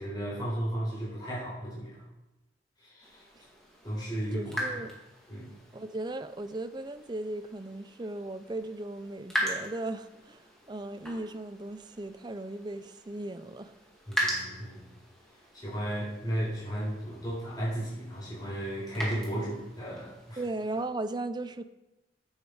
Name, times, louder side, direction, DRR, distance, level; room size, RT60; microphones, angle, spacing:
voice 1, 0.0-1.9 2.8-3.2 3.8-4.6 5.3-5.5 14.1-14.8 15.5-20.4, right 1 dB, 20° left, -7 dB, 4.2 m, -34 dB
sound 1, 3.0-20.9, equal, 5° left, 2.1 m, -40 dB
voice 2, 4.3-4.9 5.7-13.8 20.4-21.7, right 2 dB, 20° right, 11 dB, 0.4 m, -37 dB
9.9 x 8.0 x 4.8 m, 1.0 s
head